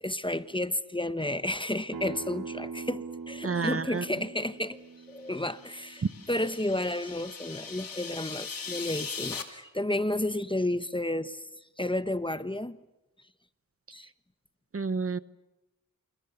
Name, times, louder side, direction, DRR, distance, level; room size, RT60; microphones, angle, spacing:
voice 1, 0.0-11.4 11.8-12.8 13.9-14.1, left 1 dB, 15° left, 13 dB, 1.0 m, -32 dB
Acoustic guitar, 1.9-7.1, right 5 dB, 75° right, 2.3 m, -43 dB
voice 2, 3.4-4.0 14.7-15.2, right 4 dB, 40° right, 15 dB, 0.9 m, -29 dB
sound 1, 5.3-9.4, left 5 dB, 75° left, 2.8 m, -40 dB
28.0 x 27.5 x 7.0 m, 1.0 s
wide cardioid pair, 65°, 35 cm